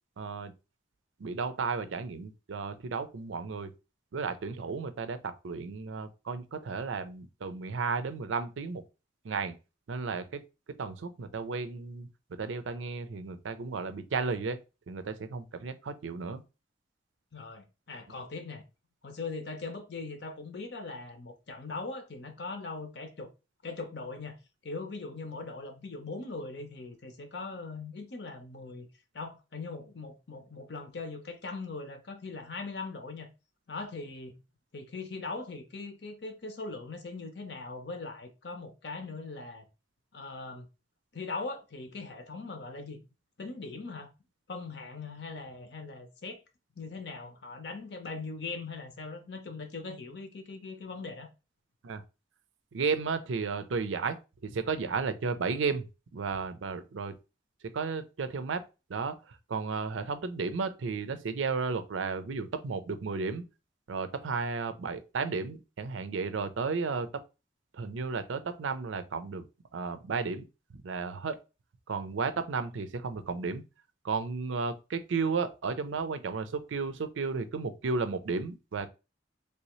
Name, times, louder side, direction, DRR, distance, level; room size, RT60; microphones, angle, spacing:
voice 1, 0.2-0.5 1.2-3.7 4.1-8.8 9.2-9.6 9.9-10.4 10.8-12.1 12.4-14.6 14.9-16.4 51.8-52.0 52.7-55.9 56.1-57.2 57.7-58.6 58.9-63.4 63.9-67.2 67.7-69.5 69.7-70.5 70.7-71.4 71.9-73.6 74.0-78.9, right 4 dB, 80° right, 0.5 m, -33 dB
voice 2, 17.3-18.7 19.0-23.3 23.6-24.4 24.6-28.9 29.1-33.3 33.7-34.4 34.7-39.7 40.1-40.7 41.1-43.0 43.4-44.1 44.5-46.4 46.8-51.3, left 3 dB, 60° left, 0.7 m, -40 dB
3.3 x 2.7 x 3.0 m
head